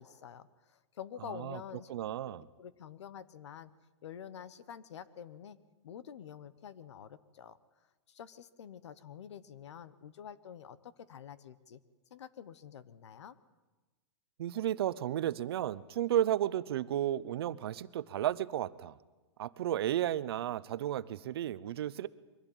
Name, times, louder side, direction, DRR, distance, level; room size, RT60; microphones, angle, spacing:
voice 1, 0.0-1.9 2.6-3.7 4.0-5.6 5.8-7.6 8.1-11.8 12.1-13.3, left 8 dB, 70° left, 16 dB, 1.2 m, -48 dB
voice 2, 1.9-2.5 14.4-18.9 19.4-22.1, right 12 dB, 55° right, 16 dB, 0.8 m, -33 dB
23.0 x 16.0 x 9.1 m, 1.2 s
hypercardioid pair, 165°, 15 cm